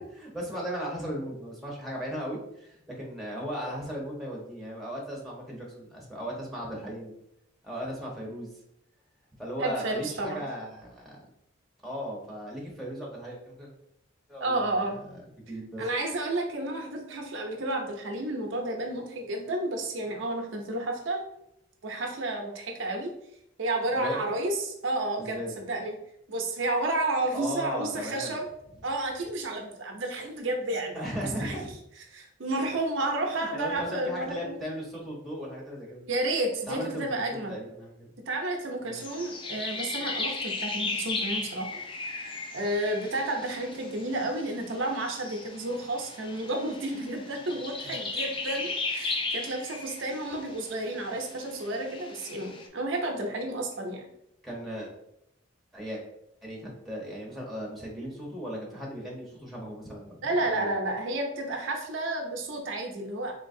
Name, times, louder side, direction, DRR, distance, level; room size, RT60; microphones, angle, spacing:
voice 1, 0.0-7.1 7.6-8.5 9.4-11.2 11.8-13.7 14.3-15.2 15.5-15.9 24.0-24.1 25.2-25.5 27.3-28.4 30.9-31.7 33.3-36.0 36.7-38.1 38.8-39.0 54.4-54.9 55.7-56.0 56.4-60.7, equal, ahead, -3 dB, 0.9 m, -37 dB
voice 2, 9.6-10.5 14.4-15.0 15.8-21.2 21.8-23.1 23.6-26.0 26.3-28.5 28.8-34.6 36.0-37.6 38.3-41.8 42.5-54.1 60.2-63.4, right 2 dB, 75° right, 2 dB, 0.6 m, -31 dB
sound 1, 39.0-52.7, left 3 dB, 25° left, 0.4 m, -36 dB
3.9 x 2.8 x 2.6 m, 0.76 s
head